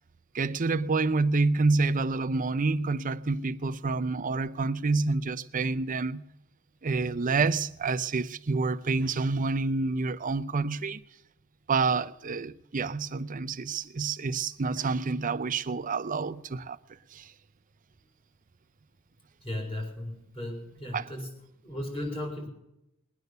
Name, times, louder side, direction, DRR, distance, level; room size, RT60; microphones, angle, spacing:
voice 1, 0.3-6.2 6.8-11.0 11.7-16.8 17.1-17.3 20.9-21.0, right 3 dB, 40° right, 0.6 m, -28 dB
voice 2, 19.4-21.3 21.6-22.5, left 1 dB, 25° left, 4.9 m, -36 dB
20.5 x 9.4 x 6.7 m
head